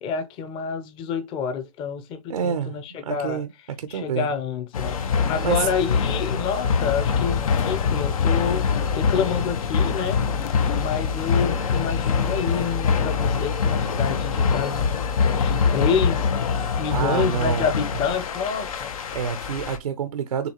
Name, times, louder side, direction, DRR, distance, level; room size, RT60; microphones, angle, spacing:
voice 1, 0.0-3.4 3.9-5.0 5.3-8.6 8.9-10.2 10.7-14.9 15.4-16.3 16.8-19.0, left 6 dB, 30° left, 0.8 m, -28 dB
voice 2, 2.3-3.5 3.8-4.3 5.4-5.7 16.9-17.7 19.1-20.5, right 7 dB, 90° right, 0.8 m, -27 dB
sound 1, 4.7-19.8, left 5 dB, 75° left, 1.0 m, -24 dB
sound 2, 6.8-12.1, left 10 dB, 50° left, 0.4 m, -32 dB
6.8 x 2.4 x 3.0 m
hypercardioid pair, 140°, 19 cm